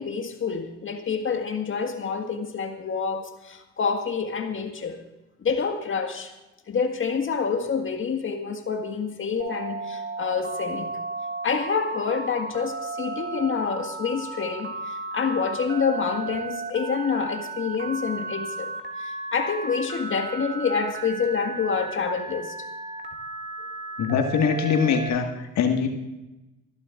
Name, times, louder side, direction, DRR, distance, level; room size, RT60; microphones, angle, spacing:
voice 1, 0.0-5.0 5.4-6.3 6.7-10.9 11.4-18.7 19.0-22.5, left 5 dB, 35° left, 5 dB, 1.8 m, -27 dB
Telephone, 9.4-25.1, right 3 dB, 30° right, 2.4 m, -34 dB
voice 2, 24.0-25.9, left 6 dB, 50° left, 4 dB, 1.8 m, -23 dB
27.0 x 11.5 x 2.5 m, 1.0 s
hypercardioid pair, 60°, 34 cm